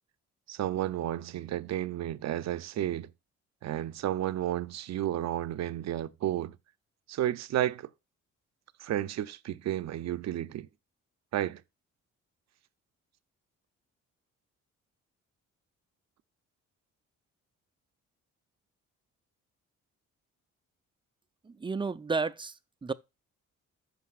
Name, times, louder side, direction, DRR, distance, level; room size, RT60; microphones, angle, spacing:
voice 1, 0.5-3.1 3.6-6.6 7.1-7.9 8.8-10.7 11.3-11.6, right 12 dB, 60° right, 0.6 m, -32 dB
voice 2, 21.4-22.9, right 4 dB, 15° right, 0.5 m, -32 dB
14.0 x 5.5 x 2.4 m
cardioid pair, 90°, 30 cm